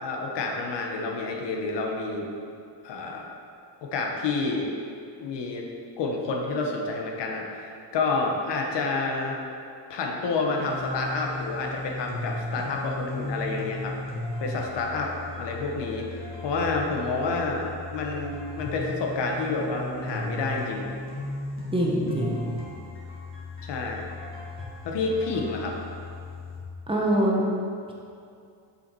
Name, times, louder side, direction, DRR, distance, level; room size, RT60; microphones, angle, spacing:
voice 1, 0.0-2.3 2.8-3.2 3.9-4.7 5.2-5.7 6.0-9.4 9.9-13.9 14.4-17.7 17.9-20.9 23.6-24.0 24.8-25.7, left 3 dB, 75° left, 0 dB, 1.2 m, -29 dB
sound 1, 10.6-26.6, left 2 dB, 30° left, 1.9 m, -36 dB
voice 2, 21.7-22.5 26.9-27.4, right 1 dB, 10° right, -3 dB, 1.2 m, -24 dB
7.0 x 5.6 x 4.7 m, 2.4 s
cardioid pair, 115°, 42 cm